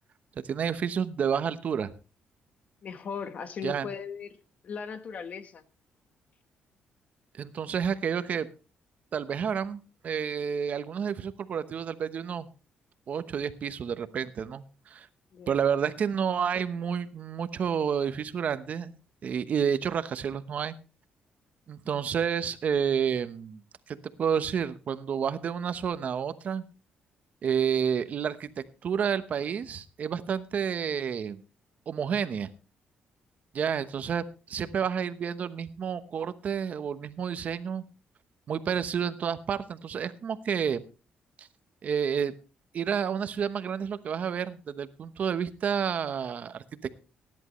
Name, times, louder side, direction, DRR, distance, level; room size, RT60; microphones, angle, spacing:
voice 1, 0.4-1.9 3.6-3.9 7.3-8.5 9.1-12.5 13.1-15.1 15.5-19.0 19.2-20.7 21.7-23.6 23.9-26.6 27.4-28.5 28.8-31.4 31.9-32.5 33.5-37.8 38.5-40.8 41.4-41.5 41.8-42.3 42.7-46.9, right 7 dB, 50° right, 1.0 m, -30 dB
voice 2, 2.8-4.3 4.6-5.6 15.3-15.6, left 6 dB, 50° left, 1.4 m, -37 dB
19.0 x 11.0 x 3.1 m
cardioid pair, 125°, 3 cm